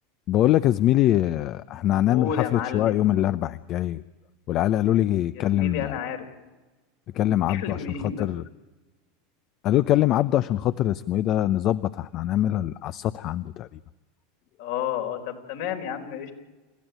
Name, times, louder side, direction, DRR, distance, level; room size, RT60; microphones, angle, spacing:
voice 1, 0.3-4.0 4.5-6.0 7.1-8.4 9.6-13.8, left 13 dB, 45° left, 15 dB, 0.6 m, -23 dB
voice 2, 2.1-2.9 5.3-6.3 7.5-8.2 14.6-16.3, left 8 dB, 65° left, 5 dB, 4.1 m, -31 dB
29.0 x 15.0 x 9.0 m, 1.2 s
hypercardioid pair, 90°, 0 cm